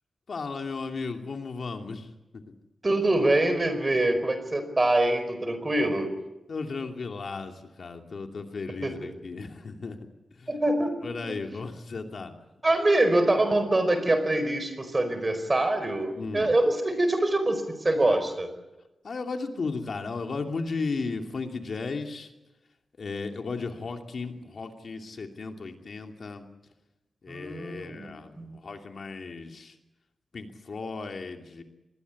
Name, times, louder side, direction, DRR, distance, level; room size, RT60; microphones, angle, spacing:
voice 1, 0.3-2.1 6.5-10.0 10.4-10.5 11.0-12.3 16.2-16.5 19.0-22.3 23.0-26.5 27.2-29.8 30.3-31.6, left 4 dB, 55° left, 4 dB, 2.7 m, -35 dB
voice 2, 2.8-6.1 8.8-9.1 10.5-11.4 12.6-18.5 27.3-28.1 28.4-28.6, right 1 dB, 25° right, 9 dB, 4.9 m, -25 dB
26.0 x 21.0 x 8.6 m, 0.98 s
wide cardioid pair, 130°, 0 cm